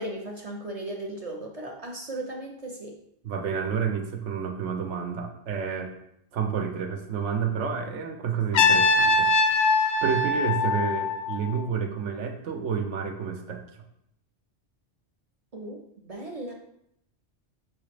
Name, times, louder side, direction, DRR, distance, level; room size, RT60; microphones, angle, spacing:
voice 1, 0.0-3.0 15.5-15.8 16.0-16.5, right 1 dB, 45° right, -1 dB, 0.5 m, -36 dB
voice 2, 3.2-5.9 6.3-9.6 10.0-13.8, right 6 dB, 90° right, 5 dB, 1.0 m, -30 dB
Trumpet, 8.5-11.5, left 3 dB, 60° left, 0.6 m, -22 dB
5.0 x 3.1 x 3.2 m, 0.76 s
omnidirectional pair, 1.2 m